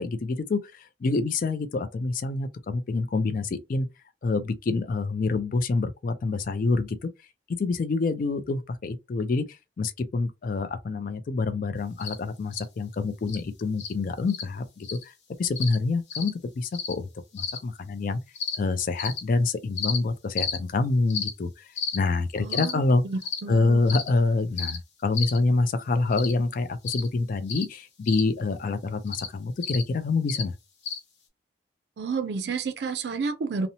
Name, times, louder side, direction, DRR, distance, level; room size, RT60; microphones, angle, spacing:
voice 1, 0.0-3.9 4.2-7.1 7.6-15.1 15.4-18.2 18.5-23.0 23.5-30.6, left 3 dB, 50° left, 0.3 m, -27 dB
sound 1, 12.0-12.1 12.5-12.6 13.3-13.4 13.8-13.9 14.3-14.4 14.8-15.0 15.6-15.8 16.1-16.3 16.7-16.9 17.4-17.6 18.4-18.6 19.0-19.2 19.8-20.0 20.4-20.6 21.1-21.3 21.8-22.0 22.5-22.7 23.2-23.4 23.9-24.1 24.6-24.8 25.1-25.4 26.1-26.3 26.9-27.1 27.5-27.6 28.1-28.2 29.1-29.3 29.6-29.8 30.3-30.4 30.9-31.0, left 6 dB, 85° left, 0.9 m, -31 dB
voice 2, 22.4-22.8 23.1-23.8 32.0-33.7, right 4 dB, 65° right, 0.4 m, -30 dB
2.7 x 2.0 x 2.7 m
head